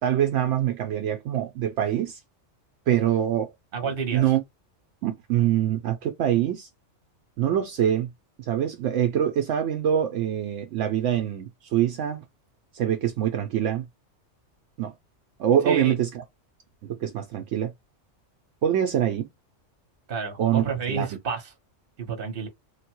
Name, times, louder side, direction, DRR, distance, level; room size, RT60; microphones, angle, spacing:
voice 1, 0.0-2.2 2.9-3.5 4.1-4.4 5.0-6.7 7.4-8.1 8.4-12.2 12.7-13.9 14.8-14.9 15.4-16.2 16.8-17.7 18.6-19.3 20.4-21.1, right 10 dB, 75° right, 0.9 m, -24 dB
voice 2, 3.7-4.2 15.6-15.9 20.1-21.4 22.0-22.5, right 5 dB, 50° right, 1.1 m, -30 dB
3.3 x 2.2 x 2.9 m
omnidirectional pair, 1.3 m